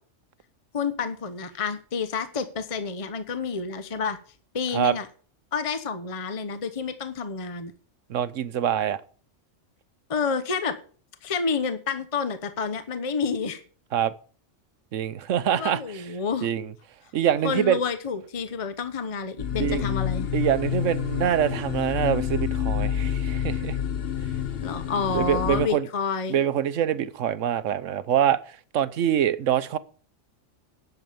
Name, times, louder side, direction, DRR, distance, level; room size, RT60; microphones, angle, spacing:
voice 1, 0.7-4.2 4.5-5.1 5.5-7.7 10.1-10.8 11.2-13.6 15.5-16.5 17.4-20.3 24.6-26.5, left 5 dB, 30° left, 0.9 m, -29 dB
voice 2, 8.1-9.0 13.9-14.1 14.9-16.0 16.4-16.6 17.1-17.8 19.6-19.8 20.3-23.8 25.1-25.9 26.3-29.8, right 10 dB, 80° right, 1.1 m, -25 dB
sound 1, 19.4-25.7, left 9 dB, 55° left, 1.0 m, -28 dB
11.0 x 7.2 x 6.8 m
omnidirectional pair, 1.3 m